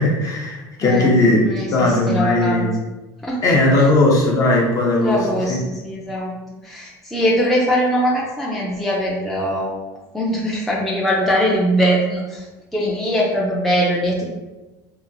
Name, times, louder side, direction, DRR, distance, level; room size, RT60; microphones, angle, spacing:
voice 1, 0.0-1.4 1.7-2.7 3.4-5.2 5.5-5.6, left 2 dB, 35° left, -2 dB, 0.7 m, -17 dB
voice 2, 0.8-1.1 1.4-2.7 3.2-3.4 3.7-3.9 5.0-6.3 6.6-9.7 10.1-12.5 12.7-14.3, equal, ahead, -5 dB, 0.4 m, -21 dB
2.8 x 2.4 x 2.6 m, 1.1 s
supercardioid pair, 125°, 10 cm